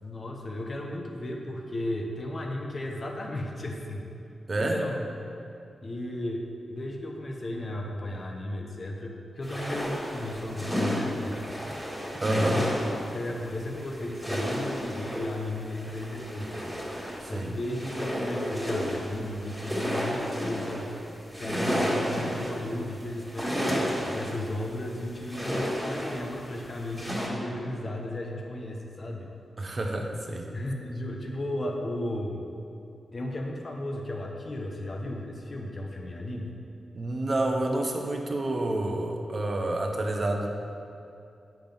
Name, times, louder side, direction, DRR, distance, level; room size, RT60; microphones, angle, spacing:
voice 1, 0.0-4.1 4.6-5.1 5.8-11.8 12.3-12.7 13.1-16.8 17.2-20.9 21.4-29.3 30.5-32.5 33.1-36.6, left 1 dB, 40° left, 1 dB, 0.9 m, -35 dB
voice 2, 4.5-4.9 12.2-12.6 17.2-17.5 29.6-30.5 36.9-40.5, right 2 dB, 40° right, 3 dB, 0.8 m, -29 dB
sound 1, 9.4-27.3, equal, ahead, 1.8 m, -32 dB
8.8 x 5.8 x 3.5 m, 2.7 s
wide cardioid pair, 95°, 0 cm